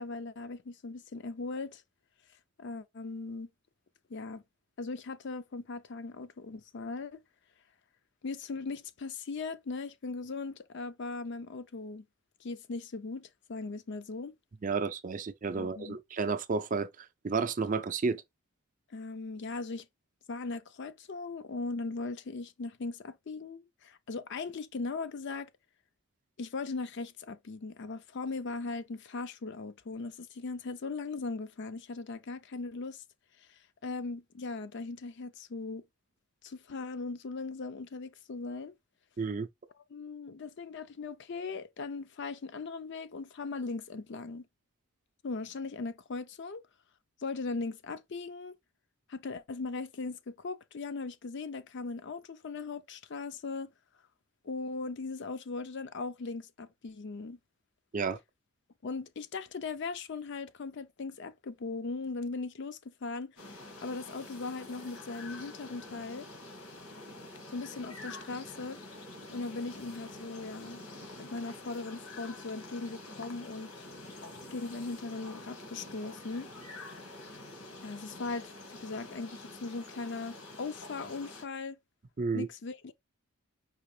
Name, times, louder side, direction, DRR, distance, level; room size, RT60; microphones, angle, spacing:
voice 1, 0.0-1.8 2.6-3.5 4.1-4.4 4.8-7.2 8.2-12.1 12.4-14.3 15.5-16.0 18.9-19.9 20.3-25.5 26.4-33.0 33.5-35.8 36.4-38.7 39.9-44.5 45.2-46.6 47.2-48.6 49.1-53.7 54.4-57.4 58.8-63.3 63.8-66.3 67.5-68.8 69.3-70.8 71.2-73.8 74.5-76.5 77.8-81.8 82.3-82.9, left 3 dB, 50° left, 0.5 m, -39 dB
voice 2, 14.6-18.2 39.2-39.5 57.9-58.2 82.2-82.5, right 4 dB, 35° right, 0.4 m, -31 dB
sound 1, 63.4-81.4, left 2 dB, 80° left, 1.7 m, -47 dB
4.9 x 2.9 x 3.1 m
head